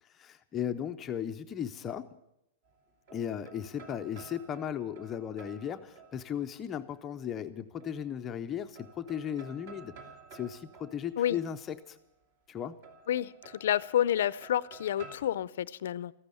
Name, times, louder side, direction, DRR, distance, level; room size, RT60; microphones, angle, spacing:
voice 1, 0.1-2.2 3.1-9.9 10.3-12.0 12.5-12.8, left 9 dB, 15° left, 7 dB, 0.5 m, -36 dB
sound 1, 2.6-6.6 7.8-8.5 8.7-11.9 12.8-15.2, right 4 dB, 45° right, 2.3 m, -53 dB
voice 2, 13.6-16.1, left 11 dB, 65° left, 19 dB, 0.5 m, -29 dB
14.5 x 12.0 x 8.2 m, 0.81 s
supercardioid pair, 175°, 0 cm